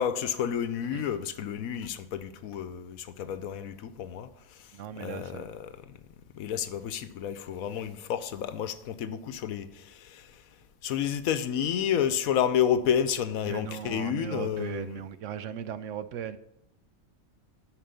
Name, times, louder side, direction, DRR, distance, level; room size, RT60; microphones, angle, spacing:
voice 1, 0.0-6.0 6.3-10.4 10.8-15.0, left 9 dB, 85° left, 1.2 m, -30 dB
voice 2, 4.7-5.6 13.4-16.4, right 9 dB, 70° right, 0.9 m, -37 dB
10.0 x 5.1 x 6.9 m
omnidirectional pair, 1.4 m